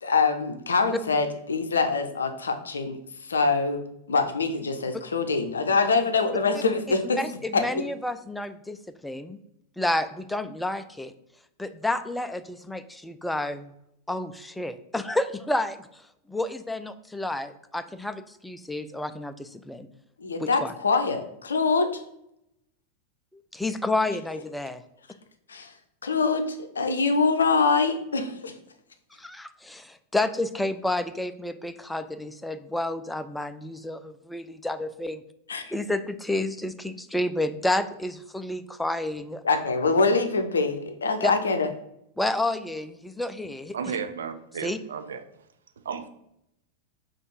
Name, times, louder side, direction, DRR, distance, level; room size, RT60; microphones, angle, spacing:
voice 1, 0.0-3.8 4.1-7.2 7.5-7.8 20.2-21.9 25.5-25.7 26.0-28.5 35.5-35.7 39.4-41.7, left 4 dB, 70° left, 7 dB, 0.5 m, -24 dB
voice 2, 7.2-8.8 9.0-9.4 9.8-11.1 11.6-13.7 14.1-15.9 16.3-19.9 20.4-20.7 23.5-24.8 29.2-35.2 35.7-39.4 41.2-41.3 42.2-43.8 44.6-44.8, left 1 dB, 5° left, 10 dB, 0.3 m, -30 dB
voice 3, 43.7-45.2 45.8-46.1, right 6 dB, 65° right, 9 dB, 0.4 m, -33 dB
4.3 x 2.4 x 4.5 m, 0.77 s
figure-of-eight pair, 90°, 0 cm